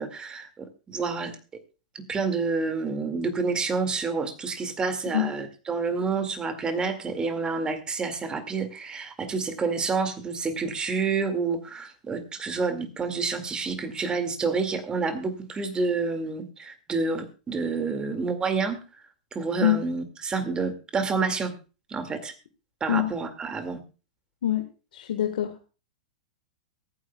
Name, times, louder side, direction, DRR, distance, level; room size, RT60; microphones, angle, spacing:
voice 1, 0.0-1.4 1.9-19.0 19.3-21.5 21.9-22.3 22.8-23.8, right 4 dB, 20° right, 8 dB, 2.1 m, -29 dB
voice 2, 24.9-25.5, left 11 dB, 75° left, 4 dB, 1.5 m, -24 dB
23.0 x 9.6 x 2.3 m, 0.32 s
hypercardioid pair, 115°, 5 cm